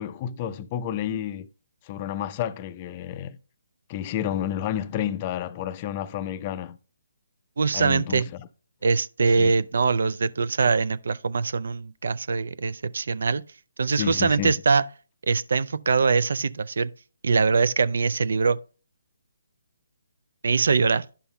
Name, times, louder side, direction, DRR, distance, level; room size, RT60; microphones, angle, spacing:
voice 1, 0.0-1.5 1.8-3.4 3.9-6.8 7.7-8.5 9.4-9.5 14.0-14.5, left 10 dB, 30° left, 0.4 m, -30 dB
voice 2, 7.6-8.3 8.8-13.4 13.8-14.8 15.3-16.9 17.2-18.6 20.4-21.0, right 4 dB, 70° right, 0.3 m, -23 dB
11.5 x 5.5 x 2.2 m
hypercardioid pair, 155°, 0 cm